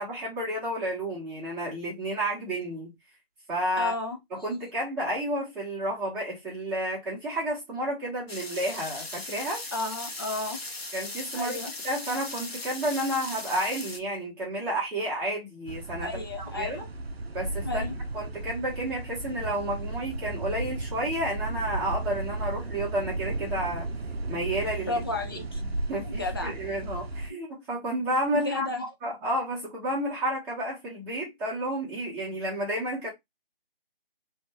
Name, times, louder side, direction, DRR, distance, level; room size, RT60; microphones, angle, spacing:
voice 1, 0.0-2.9 3.5-3.9 4.3-9.6 10.9-16.9 17.3-17.9 18.1-23.9 24.3-25.0 25.9-28.7 29.0-33.1, right 1 dB, 5° right, 1.1 m, -31 dB
voice 2, 3.8-4.2 9.7-10.6 11.3-11.7 16.0-16.8 17.6-17.9 24.9-25.6 26.0-26.5 28.3-28.9, left 2 dB, 25° left, 0.7 m, -32 dB
sound 1, 8.3-14.0, left 2 dB, 80° left, 1.2 m, -38 dB
sound 2, 15.7-27.3, right 2 dB, 90° right, 0.6 m, -34 dB
3.1 x 2.6 x 3.7 m
figure-of-eight pair, 155°, 30 cm